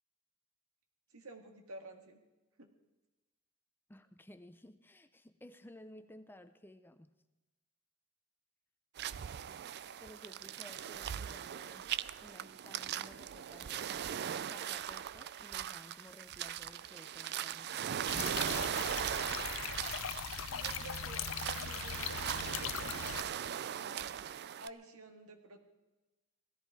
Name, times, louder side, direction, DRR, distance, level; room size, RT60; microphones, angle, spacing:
voice 1, 1.1-2.2 2.6-2.7 20.4-24.1 24.6-25.6, right 2 dB, 80° right, 5 dB, 1.8 m, -52 dB
voice 2, 3.9-7.1 10.0-11.9 12.2-14.2 14.5-18.0, left 1 dB, 10° left, 10 dB, 0.6 m, -56 dB
sound 1, 9.0-24.7, right 9 dB, 50° right, 0.4 m, -39 dB
sound 2, 18.1-23.2, left 8 dB, 65° left, 0.6 m, -40 dB
17.5 x 13.5 x 4.7 m, 1.1 s
head